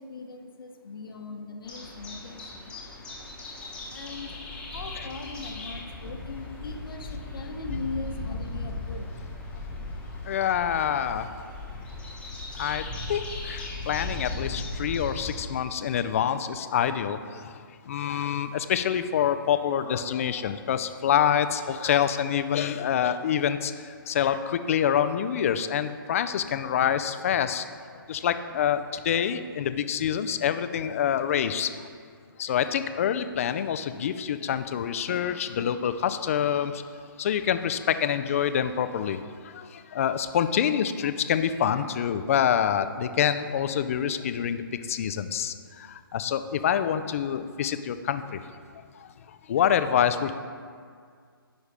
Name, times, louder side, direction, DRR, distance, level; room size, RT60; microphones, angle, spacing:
voice 1, 0.0-3.2 3.5-10.1 11.5-12.5, left 3 dB, 65° left, 4 dB, 1.0 m, -41 dB
sound 1, 1.7-15.5, left 2 dB, 10° left, 1.0 m, -37 dB
voice 2, 10.2-11.3 12.6-27.6 28.1-31.9 32.4-36.8 37.2-44.6 44.9-48.4 49.0-49.1 49.5-50.3, left 9 dB, 35° left, 11 dB, 0.3 m, -26 dB
9.7 x 5.2 x 3.3 m, 2.1 s
hypercardioid pair, 155°, 12 cm